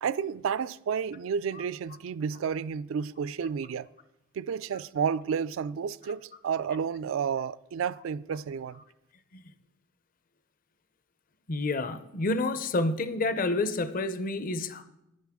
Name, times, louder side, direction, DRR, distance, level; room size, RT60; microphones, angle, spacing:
voice 1, 0.0-3.9 4.3-8.8, right 7 dB, 70° right, 0.3 m, -31 dB
voice 2, 11.5-14.8, left 2 dB, 45° left, 0.6 m, -29 dB
11.5 x 9.5 x 3.6 m
head